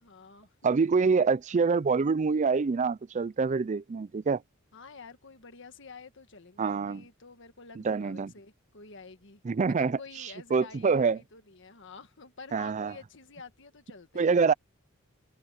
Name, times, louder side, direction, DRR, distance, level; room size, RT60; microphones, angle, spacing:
voice 1, 0.0-1.0 4.7-9.4 9.7-14.5, left 4 dB, 60° left, 1.7 m, -49 dB
voice 2, 0.6-4.4 6.6-7.0 7.8-8.3 9.5-10.0 10.5-11.2 12.5-12.9 14.2-14.5, right 5 dB, 35° right, 0.4 m, -25 dB
head